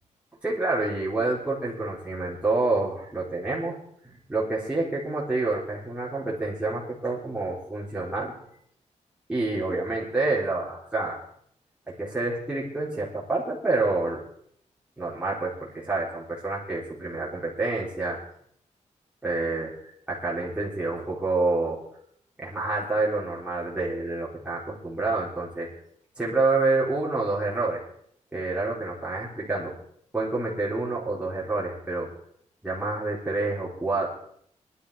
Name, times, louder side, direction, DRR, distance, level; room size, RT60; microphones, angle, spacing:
voice 1, 0.4-3.8 4.0-8.4 9.3-11.2 11.9-14.2 15.0-18.2 19.2-19.7 20.1-21.8 22.4-25.7 26.2-27.8 28.3-29.7 30.1-32.1 32.6-34.1, right 3 dB, 10° right, -7 dB, 4.1 m, -28 dB
20.0 x 11.5 x 4.9 m, 0.67 s
wide cardioid pair, 180°, 13 cm